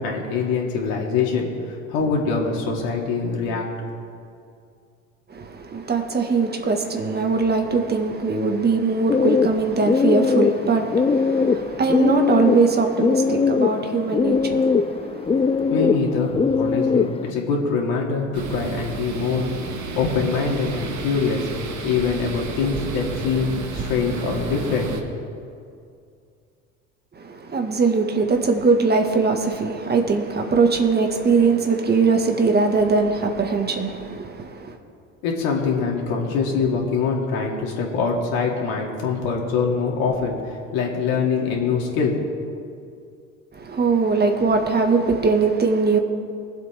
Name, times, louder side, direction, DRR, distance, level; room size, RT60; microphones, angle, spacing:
voice 1, 0.0-3.6 15.7-19.5 19.9-21.5 21.8-24.9 35.2-42.2, left 5 dB, 65° left, -1 dB, 3.2 m, -24 dB
voice 2, 5.3-15.7 27.2-34.8 43.5-46.0, right 4 dB, 25° right, 4 dB, 1.9 m, -21 dB
sound 1, 9.1-17.3, left 5 dB, 15° left, 0.5 m, -21 dB
sound 2, 18.3-25.0, right 4 dB, 45° right, 2.0 m, -32 dB
24.0 x 8.1 x 3.7 m, 2.4 s
hypercardioid pair, 70°, 38 cm